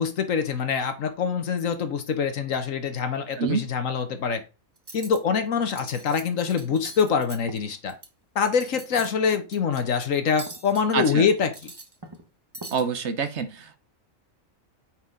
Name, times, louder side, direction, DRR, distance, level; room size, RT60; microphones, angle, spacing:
voice 1, 0.0-4.4 4.9-7.9 8.3-11.5, left 6 dB, 75° left, 9 dB, 1.4 m, -25 dB
voice 2, 3.4-3.7 10.9-11.3 12.7-13.8, right 6 dB, 60° right, 10 dB, 1.1 m, -27 dB
Cutlery silverware, 4.8-5.2 5.6-6.2 6.5-8.1 8.4-9.1 9.5-9.8 10.4-10.9 11.4-12.3 12.5-12.8, right 2 dB, 20° right, 1.0 m, -42 dB
8.9 x 4.6 x 3.8 m, 0.29 s
omnidirectional pair, 1.4 m